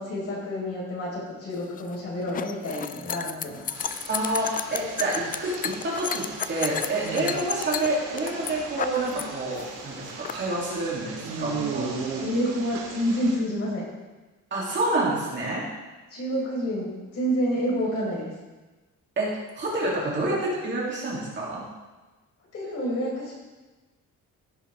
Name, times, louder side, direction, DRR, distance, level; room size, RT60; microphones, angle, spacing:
voice 1, 0.0-3.7 12.2-13.8 16.1-18.3 22.5-23.3, equal, 50° left, -4 dB, 4.7 m, -28 dB
sound 1, 1.5-9.2 9.5-10.3, left 8 dB, 30° left, 0.3 m, -33 dB
sound 2, 3.7-13.4, right 4 dB, 75° right, 2.4 m, -37 dB
voice 2, 4.1-11.9 14.5-15.7 19.2-21.6, right 2 dB, 35° right, -5 dB, 3.1 m, -28 dB
16.0 x 9.2 x 3.6 m, 1.2 s
cardioid pair, 175°, 31 cm